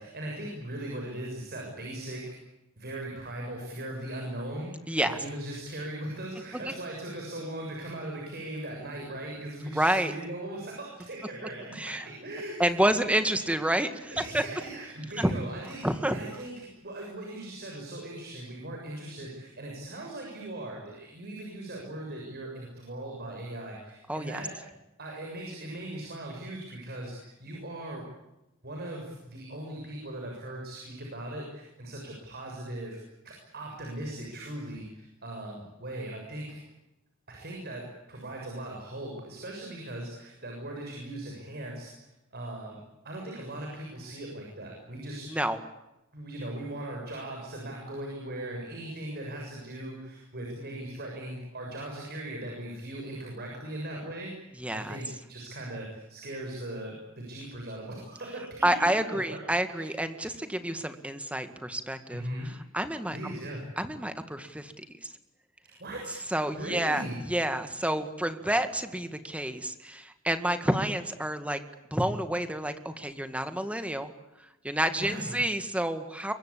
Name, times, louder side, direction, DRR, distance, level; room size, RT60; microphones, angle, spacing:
voice 1, 0.0-2.3 2.8-4.7 5.0-12.9 13.8-24.5 25.0-28.1 28.6-33.0 33.2-36.6 37.3-41.9 42.3-42.8 43.0-45.4 46.1-54.3 54.7-58.8 59.1-59.4 59.7-60.3 62.1-62.5 63.1-63.6 65.8-66.2 66.5-67.2 75.0-75.3, right 1 dB, 50° right, 0 dB, 6.9 m, -39 dB
voice 2, 4.9-5.2 6.6-6.7 9.7-10.1 11.8-12.1 12.6-14.4 15.2-15.3 15.8-16.2 24.1-24.4 45.3-45.6 54.6-55.0 58.6-63.2 63.8-65.1 66.3-71.6 71.9-74.1 74.6-76.3, right 1 dB, 5° right, 9 dB, 2.0 m, -29 dB
27.0 x 23.5 x 8.7 m, 0.94 s
head